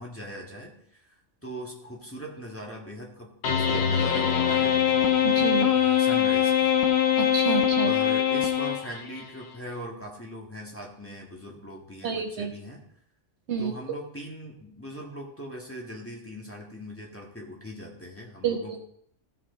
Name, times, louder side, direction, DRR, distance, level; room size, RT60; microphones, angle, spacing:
voice 1, 0.0-4.8 5.7-6.8 7.8-12.8 13.6-18.8, equal, 10° left, -2 dB, 1.7 m, -40 dB
sound 1, 3.4-9.2, left 9 dB, 60° left, 1.1 m, -23 dB
voice 2, 5.2-5.7 7.2-7.9 12.0-12.5 13.5-13.7 18.4-18.8, right 6 dB, 65° right, 5 dB, 1.1 m, -28 dB
14.5 x 5.5 x 3.9 m, 0.67 s
omnidirectional pair, 1.3 m